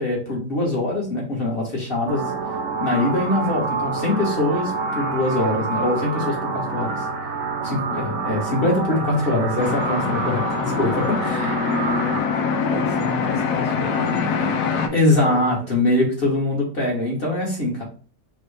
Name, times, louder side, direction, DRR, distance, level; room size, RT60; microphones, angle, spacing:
voice 1, 0.0-2.2 2.8-7.0 7.6-10.4 10.8-11.7 14.9-17.8, left 2 dB, 35° left, -2 dB, 1.5 m, -23 dB
sound 1, 2.1-12.2, right 4 dB, 65° right, 0.6 m, -27 dB
voice 2, 8.9-10.8 12.7-15.6, left 2 dB, 25° right, -1 dB, 1.0 m, -34 dB
sound 2, 9.6-14.9, left 5 dB, 65° left, 1.1 m, -24 dB
5.4 x 2.5 x 3.3 m, 0.39 s
omnidirectional pair, 1.9 m